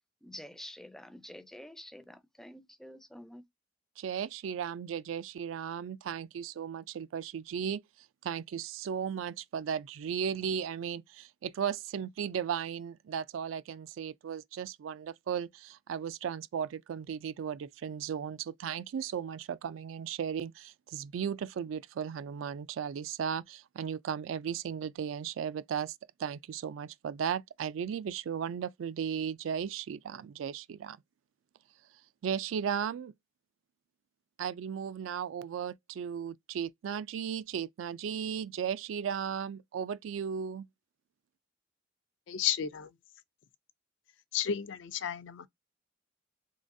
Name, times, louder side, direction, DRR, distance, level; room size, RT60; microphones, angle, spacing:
voice 1, 0.2-3.5, left 1 dB, ahead, 0.4 m, -48 dB
voice 2, 4.0-7.8 8.2-25.9 26.2-31.0 32.2-33.1 34.4-40.7, right 8 dB, 85° right, 0.3 m, -36 dB
voice 3, 42.3-43.0 44.3-45.5, left 9 dB, 70° left, 0.4 m, -32 dB
3.7 x 3.1 x 2.6 m
head